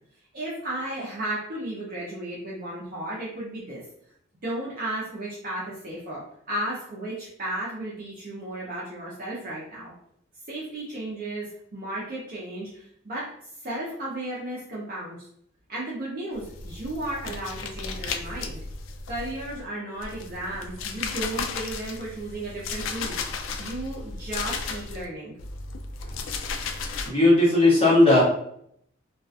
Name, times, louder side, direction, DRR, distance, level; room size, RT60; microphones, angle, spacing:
voice 1, 0.3-3.8 4.4-9.9 10.5-13.3 13.6-15.2 15.7-18.6 19.1-23.1 23.6-25.3, right 1 dB, 45° right, -5 dB, 0.6 m, -34 dB
sound 1, 16.3-19.6 20.0-25.1 25.4-27.1, left 4 dB, 70° left, 0.3 m, -34 dB
voice 2, 27.0-28.2, left 2 dB, 30° left, -7 dB, 1.1 m, -17 dB
2.3 x 2.2 x 2.5 m, 0.69 s
head